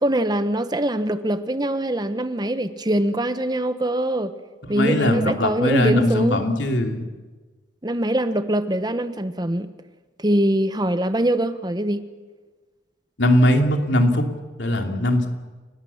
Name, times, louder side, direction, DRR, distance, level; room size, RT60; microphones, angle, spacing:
voice 1, 0.0-4.3 4.7-6.4 7.8-9.7 10.2-12.1, right 1 dB, 25° right, 11 dB, 1.0 m, -23 dB
voice 2, 4.6-7.0 13.2-14.3 14.6-15.3, left 1 dB, 85° left, 4 dB, 3.0 m, -20 dB
29.5 x 18.0 x 7.2 m, 1.3 s
head